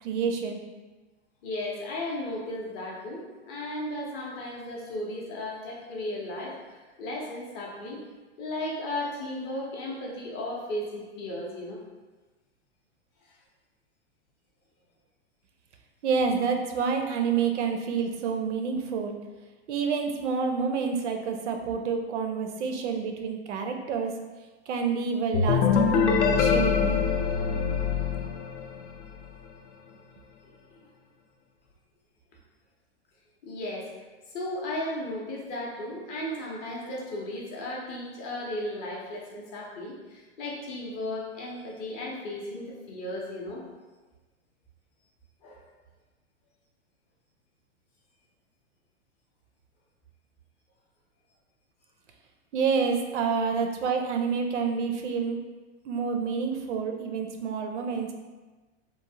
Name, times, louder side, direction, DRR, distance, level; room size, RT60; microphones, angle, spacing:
voice 1, 0.0-0.6 16.0-19.2 19.7-24.1 24.7-27.0 52.5-55.4 55.8-58.1, right 5 dB, 85° right, 4 dB, 0.5 m, -28 dB
voice 2, 1.4-8.0 8.4-11.8 29.8-29.9 33.4-33.9 34.3-43.6 45.4-45.6 53.5-53.6, left 1 dB, 30° left, -2 dB, 0.5 m, -35 dB
sound 1, 25.3-29.0, left 6 dB, 80° left, 0.5 m, -24 dB
3.1 x 2.0 x 2.6 m, 1.2 s
hypercardioid pair, 140°, 34 cm